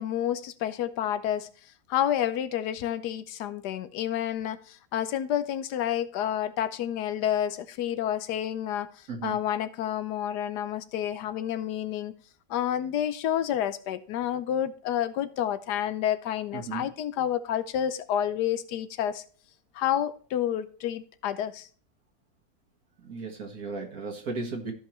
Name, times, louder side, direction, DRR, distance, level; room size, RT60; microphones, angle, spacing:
voice 1, 0.0-1.5 1.9-8.9 9.2-12.1 12.5-19.2 19.8-21.7, left 10 dB, 80° left, 1.3 m, -29 dB
voice 2, 9.1-9.4 16.5-16.9 23.0-24.7, right 4 dB, 60° right, 2.0 m, -35 dB
15.0 x 5.6 x 3.1 m
omnidirectional pair, 1.7 m